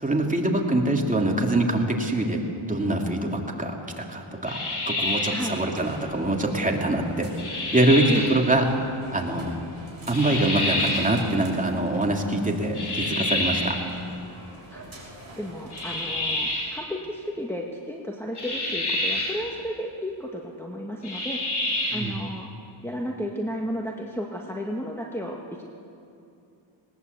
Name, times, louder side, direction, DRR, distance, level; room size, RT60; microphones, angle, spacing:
voice 1, 0.0-2.4 2.7-4.6 4.9-7.3 7.7-8.7 9.1-9.5 10.1-13.8 21.9-22.1, right 1 dB, 15° right, 0 dB, 2.9 m, -24 dB
sound 1, 4.4-5.5 7.4-8.4 10.1-11.1 12.7-13.8 15.7-16.7 18.4-19.4 21.0-22.1, left 1 dB, 55° left, 4.8 m, -28 dB
sound 2, 5.6-16.3, right 1 dB, 30° right, 6.5 m, -45 dB
voice 2, 15.4-21.4 21.9-22.5 22.8-25.6, equal, 5° left, -1 dB, 1.7 m, -33 dB
20.0 x 19.5 x 8.2 m, 2.6 s
cardioid pair, 85°, 49 cm